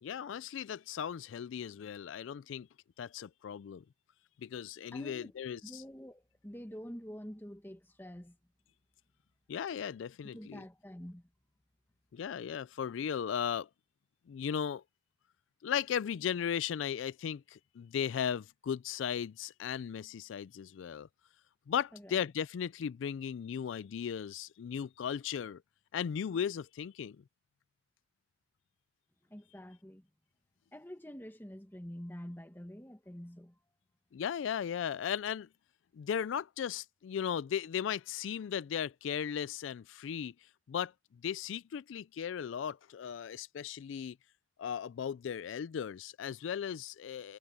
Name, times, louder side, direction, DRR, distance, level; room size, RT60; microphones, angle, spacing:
voice 1, 0.0-2.7 3.0-3.8 4.4-5.8 9.5-10.6 12.1-13.7 14.3-14.8 15.6-21.1 21.7-25.6 25.9-27.2 34.1-35.5 35.9-40.3 40.7-40.9 41.2-44.2 44.6-47.4, left 8 dB, 75° left, 0.3 m, -36 dB
voice 2, 4.9-8.4 10.3-11.3 21.9-22.2 29.3-30.1 30.7-33.6, equal, 10° left, 1.3 m, -47 dB
head